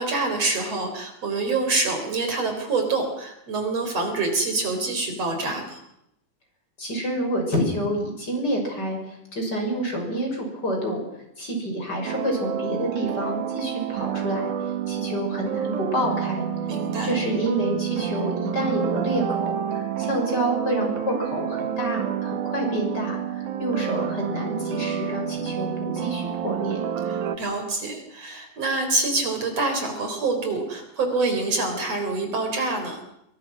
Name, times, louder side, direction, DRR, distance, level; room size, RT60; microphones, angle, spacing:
voice 1, 0.0-5.8 16.7-17.1 27.1-33.0, right 3 dB, 55° right, 5 dB, 5.2 m, -26 dB
voice 2, 6.8-11.0 11.4-16.5 17.0-26.8, right 1 dB, 30° left, 1 dB, 7.1 m, -28 dB
sound 1, 12.0-27.4, right 9 dB, 80° right, 3.0 m, -29 dB
26.5 x 24.0 x 6.2 m, 0.81 s
omnidirectional pair, 3.5 m